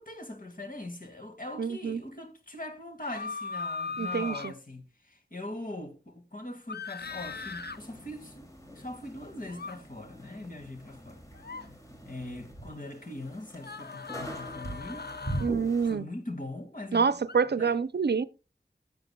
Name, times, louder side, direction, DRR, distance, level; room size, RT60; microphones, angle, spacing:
voice 1, 0.0-11.5 12.1-15.1 15.8-17.8, left 1 dB, 50° left, 2.1 m, -41 dB
voice 2, 1.6-2.0 4.0-4.5 15.4-16.0 16.9-18.2, right 5 dB, 75° right, 0.5 m, -27 dB
sound 1, 3.0-4.5 6.7-7.8 9.5-9.7 11.3-11.7 13.6-15.5 17.3-17.4, left 4 dB, 70° left, 0.7 m, -38 dB
sound 2, 7.0-15.9, equal, 20° left, 2.7 m, -42 dB
14.5 x 7.8 x 2.3 m
wide cardioid pair, 45°, 17 cm